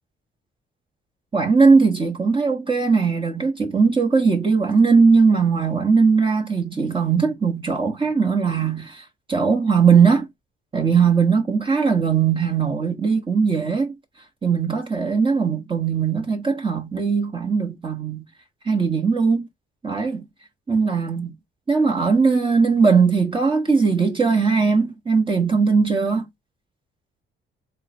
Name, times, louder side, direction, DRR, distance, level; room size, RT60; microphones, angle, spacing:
voice 1, 1.3-10.3 10.7-13.9 14.4-18.2 18.6-19.5 19.8-20.2 20.7-21.3 21.7-26.2, right 5 dB, 25° right, 1.0 m, -19 dB
3.6 x 2.2 x 4.1 m
cardioid pair, 90°, 20 cm